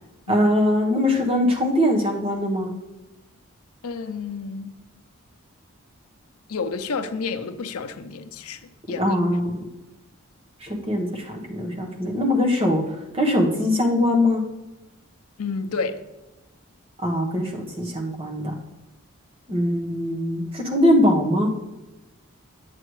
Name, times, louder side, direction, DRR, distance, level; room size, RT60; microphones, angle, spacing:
voice 1, 0.3-2.7 9.0-9.6 10.6-12.8 13.1-14.4 17.0-18.5 19.5-21.5, left 1 dB, 25° right, 1.1 m, -22 dB
voice 2, 3.8-4.7 6.5-9.2 15.4-16.0, left 4 dB, 90° left, 0.6 m, -30 dB
8.7 x 7.8 x 3.1 m
head